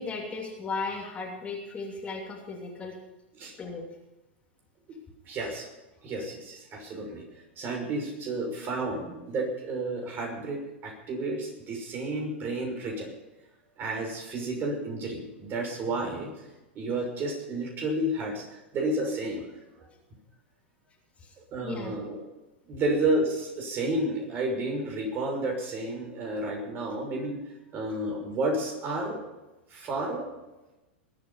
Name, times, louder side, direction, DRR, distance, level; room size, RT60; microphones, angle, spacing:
voice 1, 0.0-3.0 3.6-3.9 21.2-21.3 21.6-22.0, left 4 dB, 20° left, 0 dB, 3.0 m, -36 dB
voice 2, 5.3-5.7 6.0-7.2 7.6-13.1 13.8-16.3 16.7-18.5 18.7-19.4 19.8-19.9 21.5-22.2 22.7-27.4 27.7-29.2 29.7-30.3, right 2 dB, 35° right, 2 dB, 6.0 m, -31 dB
21.0 x 9.0 x 5.7 m, 1.0 s
hypercardioid pair, 105°, 6 cm